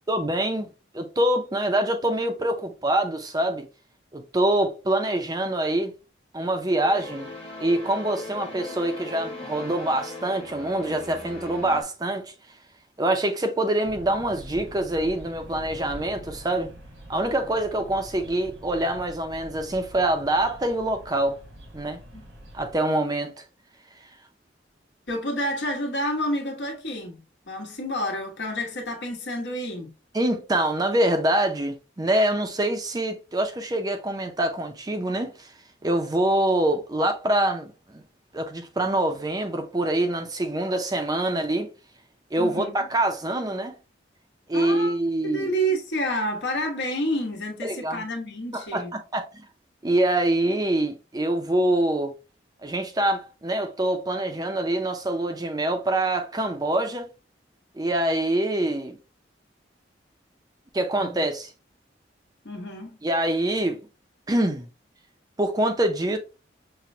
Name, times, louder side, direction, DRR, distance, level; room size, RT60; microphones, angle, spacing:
voice 1, 0.1-3.7 4.1-5.9 6.3-7.3 7.6-12.3 13.0-16.7 17.1-21.4 21.7-22.0 22.5-23.3 30.1-35.5 35.8-38.0 38.3-41.7 42.3-43.8 44.5-45.5 47.6-48.0 48.5-49.4 49.8-52.1 52.6-57.1 57.7-59.0 60.7-61.5 63.0-63.8 64.3-64.7 65.4-66.2, right 1 dB, 20° right, 0.5 m, -25 dB
sound 1, 6.8-11.8, left 3 dB, 30° left, 1.0 m, -38 dB
sound 2, 13.8-22.8, equal, 85° right, 1.4 m, -45 dB
voice 2, 25.1-29.9 42.4-42.7 44.5-44.9 45.2-48.9 61.0-61.2 62.4-63.0, equal, 75° left, 1.2 m, -29 dB
5.8 x 2.1 x 2.6 m
head